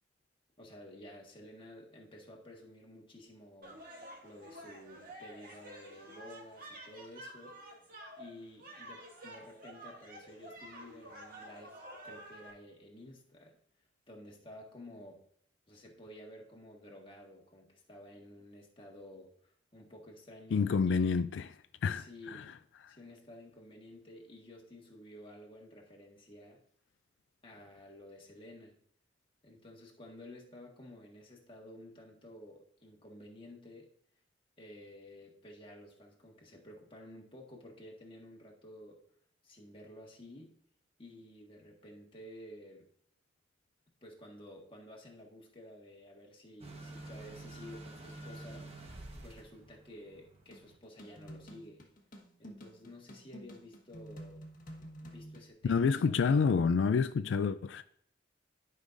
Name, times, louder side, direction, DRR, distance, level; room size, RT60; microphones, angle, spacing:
voice 1, 0.6-3.8 4.2-7.6 8.2-11.8 12.0-13.6 14.1-15.2 15.7-21.2 21.9-22.5 22.9-26.6 27.4-28.8 29.4-33.9 34.6-39.0 39.4-40.5 41.0-42.9 44.0-48.9 49.2-51.8 52.4-54.4 55.0-56.3, left 1 dB, 30° left, 1.6 m, -52 dB
sound 1, 3.6-12.5, right 1 dB, 50° right, 2.1 m, -50 dB
voice 2, 20.5-21.5 21.8-22.4 55.6-57.8, left 5 dB, 90° left, 0.4 m, -28 dB
sound 2, 46.6-50.7, right 2 dB, 35° right, 1.2 m, -48 dB
sound 3, 50.5-55.5, equal, 50° left, 1.4 m, -50 dB
11.5 x 5.5 x 2.6 m
head